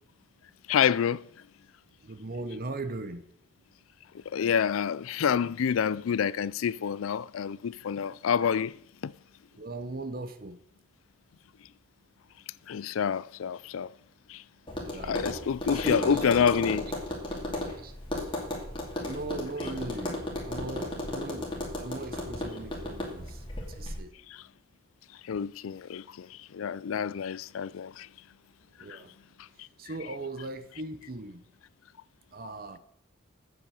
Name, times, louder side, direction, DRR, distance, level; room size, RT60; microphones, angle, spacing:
voice 1, 0.7-1.3 4.1-8.7 9.0-9.1 12.7-13.9 14.3-14.4 15.0-16.9 24.3-24.5 25.1-28.1 28.9-29.0 29.4-29.7, left 7 dB, 85° left, 0.4 m, -28 dB
voice 2, 2.0-3.3 9.5-10.6 14.8-15.2 15.7-16.3 17.8-18.0 19.0-20.2 20.4-24.2 28.8-29.1 29.8-31.4 32.3-32.8, right 2 dB, 45° right, 0.8 m, -38 dB
Tap, 14.7-24.0, left 1 dB, 25° left, 2.4 m, -35 dB
8.9 x 7.9 x 6.4 m
head